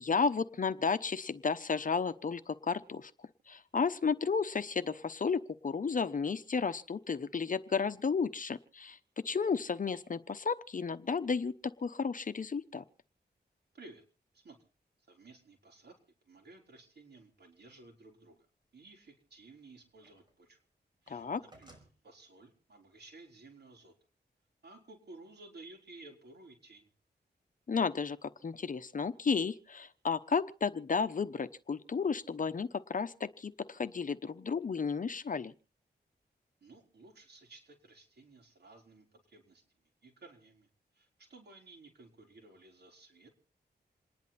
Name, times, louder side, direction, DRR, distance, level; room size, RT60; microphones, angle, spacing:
voice 1, 0.0-3.1 3.5-9.0 9.2-11.5 11.8-12.8 21.1-21.4 27.7-35.5, left 5 dB, 50° left, 12 dB, 0.9 m, -33 dB
voice 2, 15.1-16.0 16.3-18.4 18.7-20.6 21.0-23.9 24.6-26.9 36.6-39.6 40.0-43.3, right 3 dB, 65° right, 1 dB, 4.2 m, -55 dB
sound 1, 19.3-20.4 20.7-21.9, right 1 dB, 25° right, 5.0 m, -61 dB
28.0 x 10.5 x 4.2 m, 0.39 s
wide cardioid pair, 95°, 18 cm